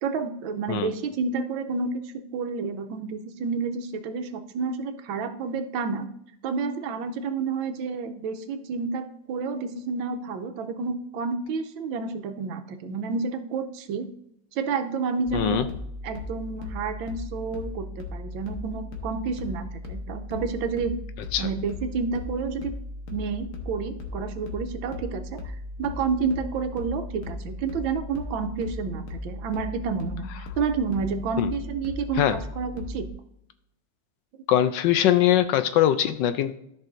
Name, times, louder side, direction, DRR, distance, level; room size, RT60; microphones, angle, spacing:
voice 1, 0.0-6.1 6.4-14.1 14.5-15.7 16.0-21.0 21.4-22.7 23.1-30.3 30.6-33.1, right 5 dB, 85° right, 8 dB, 1.5 m, -30 dB
voice 2, 15.3-15.7 21.3-21.5 31.4-31.5 32.2-32.4 34.5-36.5, left 11 dB, 75° left, 11 dB, 1.2 m, -22 dB
sound 1, 15.3-33.1, left 2 dB, 60° left, 1.7 m, -37 dB
13.5 x 5.5 x 2.6 m, 0.75 s
omnidirectional pair, 2.1 m